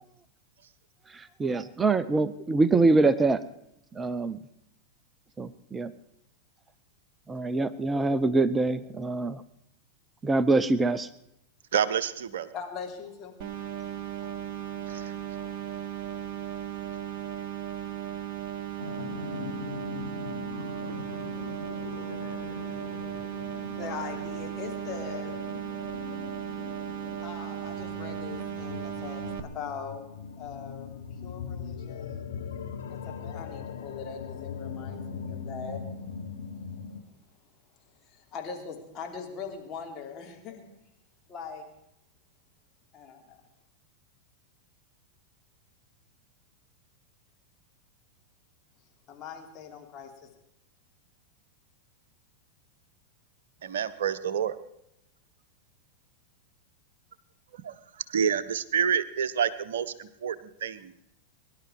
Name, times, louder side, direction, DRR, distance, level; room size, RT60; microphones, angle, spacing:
voice 1, 1.1-3.4 4.0-4.4 5.4-5.9 7.3-9.4 10.2-11.1, right 3 dB, 15° right, 16 dB, 0.7 m, -24 dB
voice 2, 11.7-12.5 14.9-15.1 53.6-54.6 57.6-57.7 58.1-60.4 60.6-60.9, right 8 dB, 60° right, 12 dB, 1.0 m, -28 dB
voice 3, 12.5-13.3 23.7-25.4 27.2-30.1 30.4-32.3 32.9-35.8 37.9-40.7 41.3-41.7 42.9-43.4 49.1-50.3, left 6 dB, 30° left, 2 dB, 3.1 m, -41 dB
sound 1, 13.4-29.4, right 10 dB, 45° right, 1.3 m, -36 dB
sound 2, 18.8-37.0, left 6 dB, 65° left, 1.4 m, -40 dB
22.5 x 11.5 x 4.7 m, 0.82 s
figure-of-eight pair, 90°, 0 cm